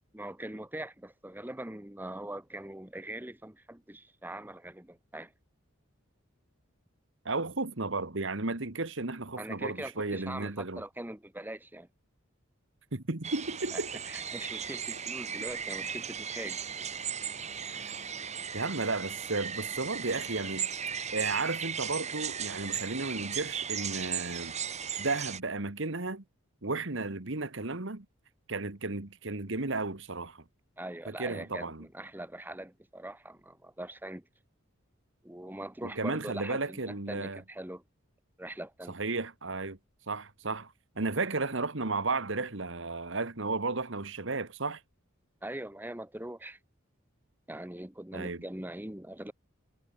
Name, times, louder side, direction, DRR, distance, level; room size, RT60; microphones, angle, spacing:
voice 1, 0.1-5.3 9.4-11.9 13.7-16.6 30.8-34.3 35.2-37.8 38.4-39.0 45.4-46.6 47.5-49.3, right 1 dB, 10° right, 1.3 m, -42 dB
voice 2, 7.2-10.8 12.9-13.9 18.5-20.7 21.1-24.6 25.0-26.2 26.6-28.0 28.5-30.4 31.1-31.8 35.8-37.4 38.9-39.8 40.1-44.8 48.1-48.4, right 3 dB, 65° right, 1.7 m, -33 dB
sound 1, 13.2-25.4, right 7 dB, 35° right, 3.3 m, -36 dB
head